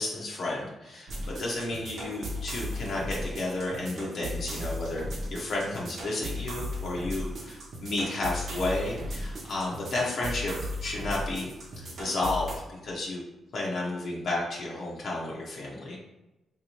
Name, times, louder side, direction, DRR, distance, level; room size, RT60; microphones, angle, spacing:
voice 1, 0.0-13.2 13.5-16.0, left 2 dB, 65° left, -4 dB, 0.6 m, -32 dB
sound 1, 1.1-12.6, equal, 65° right, 0.8 m, -36 dB
3.3 x 2.8 x 2.9 m, 0.97 s
cardioid pair, 100°, 0 cm